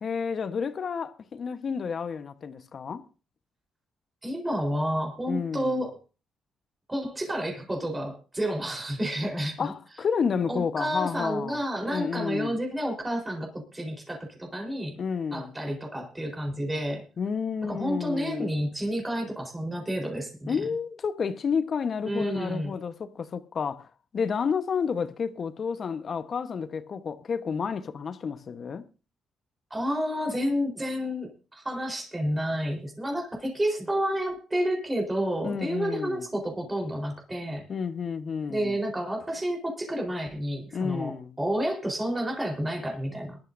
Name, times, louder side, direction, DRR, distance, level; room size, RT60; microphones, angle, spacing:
voice 1, 0.0-3.0 5.3-5.8 9.6-11.6 11.8-12.6 15.0-15.5 17.2-18.5 20.5-23.9 24.1-28.8 35.4-36.2 37.7-38.8 40.7-41.4, left 6 dB, 50° left, 1.1 m, -30 dB
voice 2, 4.2-6.0 6.9-9.7 10.5-15.0 15.3-17.0 17.6-20.6 22.0-22.7 29.7-37.7 38.5-43.5, equal, 20° right, 4.1 m, -30 dB
21.5 x 12.0 x 2.7 m
cardioid pair, 90°, 0 cm